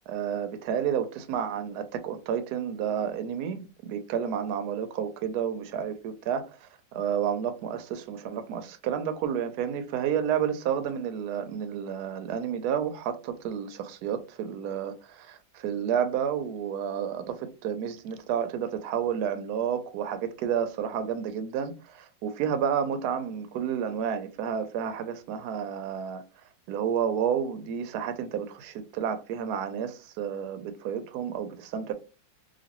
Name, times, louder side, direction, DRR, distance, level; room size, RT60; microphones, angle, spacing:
voice 1, 0.1-26.2 26.7-31.9, right 8 dB, 70° right, 1.0 m, -30 dB
2.9 x 2.6 x 2.9 m
omnidirectional pair, 2.0 m